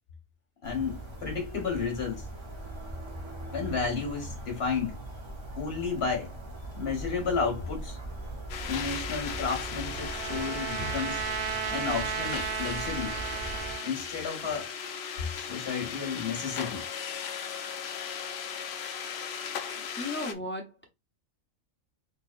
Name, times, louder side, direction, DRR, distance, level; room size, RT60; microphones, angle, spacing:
voice 1, 0.6-2.2 3.5-5.0 5.6-6.3 6.7-8.0 8.6-11.2 11.7-13.1 13.8-14.7 15.2-16.9, left 5 dB, 45° left, 1.7 m, -32 dB
sound 1, 0.6-13.7, right 1 dB, 25° right, 0.7 m, -40 dB
sound 2, 8.5-20.3, left 7 dB, 65° left, 0.7 m, -37 dB
Trumpet, 9.3-13.9, right 10 dB, 85° right, 1.0 m, -35 dB
voice 2, 20.0-20.9, left 1 dB, 15° left, 0.4 m, -35 dB
3.9 x 3.0 x 2.5 m
omnidirectional pair, 1.4 m